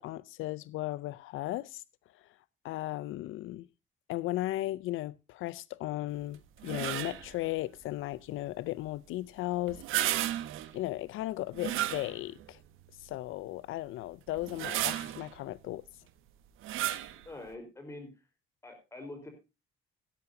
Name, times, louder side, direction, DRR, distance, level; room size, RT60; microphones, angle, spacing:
voice 1, 0.0-1.8 2.1-2.3 2.6-3.7 4.1-10.2 10.7-12.6 13.0-15.8, left 16 dB, 80° left, 0.5 m, -36 dB
sound 1, 6.6-7.3 9.7-10.7 11.5-12.5 13.0-13.1 14.3-15.3 16.6-17.2, right 13 dB, 90° right, 1.4 m, -33 dB
voice 2, 17.2-18.1 18.6-19.3, left 2 dB, 15° left, 4.3 m, -44 dB
16.5 x 11.5 x 2.7 m
cardioid pair, 175°, 20 cm